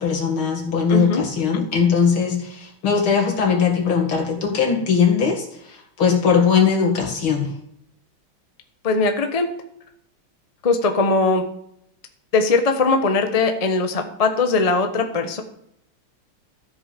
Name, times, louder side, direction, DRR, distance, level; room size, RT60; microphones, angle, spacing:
voice 1, 0.0-7.5, left 6 dB, 75° left, 2 dB, 2.9 m, -20 dB
voice 2, 0.9-1.2 8.8-9.5 10.6-11.4 12.3-15.4, left 3 dB, 25° left, 6 dB, 0.8 m, -20 dB
13.5 x 8.1 x 5.2 m, 0.73 s
omnidirectional pair, 2.3 m